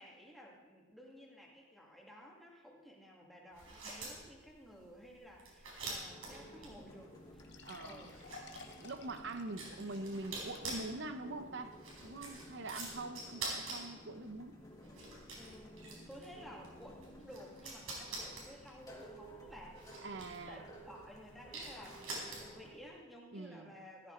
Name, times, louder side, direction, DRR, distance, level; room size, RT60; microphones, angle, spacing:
voice 1, 0.0-7.5 7.8-8.2 15.4-19.8 20.5-24.1, equal, ahead, -3 dB, 2.1 m, -54 dB
sound 1, 3.5-22.7, right 2 dB, 80° right, 4.2 m, -48 dB
sound 2, 5.8-22.8, equal, 15° left, 1.8 m, -56 dB
sound 3, 6.5-6.6 6.9-7.0 7.4-11.0 11.4-11.5 12.1-12.2, left 4 dB, 55° left, 1.1 m, -55 dB
voice 2, 7.7-8.1 8.7-14.6 20.0-20.6 23.3-23.7, right 2 dB, 55° right, 9 dB, 0.9 m, -44 dB
14.0 x 14.0 x 3.9 m, 1.1 s
head